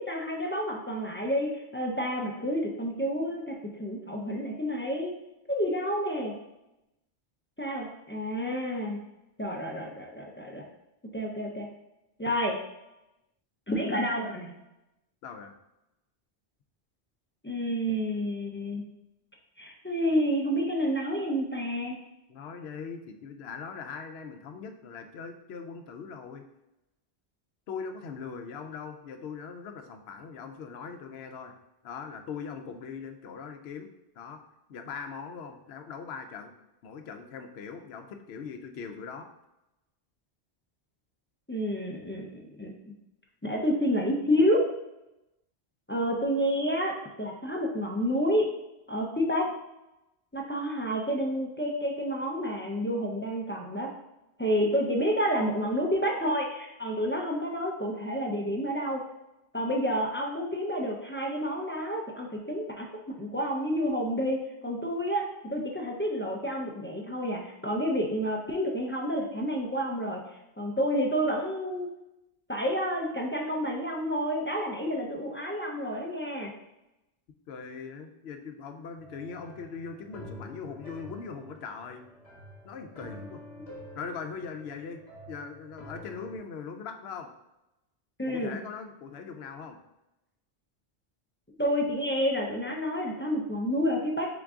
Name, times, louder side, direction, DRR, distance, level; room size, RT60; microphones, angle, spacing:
voice 1, 0.0-5.2 5.5-6.3 7.6-9.0 9.4-10.6 11.1-11.7 12.2-12.6 13.7-14.5 17.4-18.8 19.6-22.0 41.5-42.7 43.4-44.6 45.9-48.5 48.9-49.5 50.3-53.9 54.4-59.0 59.5-70.2 70.6-71.9 72.5-76.5 88.2-88.6 91.6-94.3, equal, 20° left, -1 dB, 0.3 m, -29 dB
voice 2, 15.2-15.5 22.3-26.4 27.7-31.5 31.8-33.9 34.2-34.4 34.7-36.5 36.8-39.3 77.5-82.0 82.6-83.4 83.9-85.0 85.3-87.3 88.3-89.8, left 5 dB, 70° left, 6 dB, 0.8 m, -40 dB
sound 1, 79.0-86.4, equal, 40° left, 1.2 m, -47 dB
3.8 x 3.7 x 3.5 m, 0.94 s
omnidirectional pair, 1.1 m